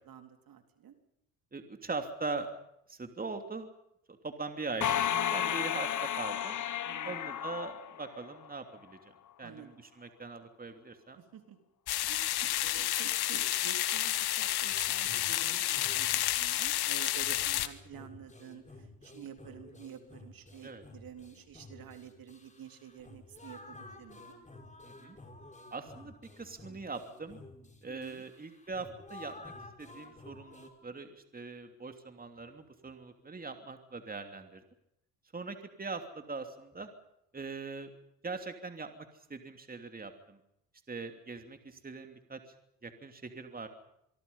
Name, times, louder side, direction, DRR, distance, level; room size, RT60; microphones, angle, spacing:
voice 1, 0.1-0.9 5.1-5.7 6.8-7.3 9.4-9.8 11.1-11.6 12.0-24.3 27.8-28.2, right 8 dB, 60° right, 6 dB, 3.9 m, -50 dB
voice 2, 1.5-2.5 2.9-3.7 4.1-6.6 7.0-11.2 20.6-20.8 24.8-25.2 25.7-27.4 27.8-34.6 35.3-36.9 37.3-37.9 38.2-40.4 40.9-42.4 42.8-43.7, right 3 dB, 20° right, 6 dB, 3.0 m, -41 dB
sound 1, 4.8-8.5, left 10 dB, 50° left, 1.5 m, -33 dB
sound 2, 11.9-17.7, left 14 dB, 70° left, 1.7 m, -30 dB
sound 3, 14.7-30.7, left 2 dB, 20° left, 5.4 m, -52 dB
26.0 x 23.5 x 5.6 m, 0.76 s
supercardioid pair, 75°, 40 cm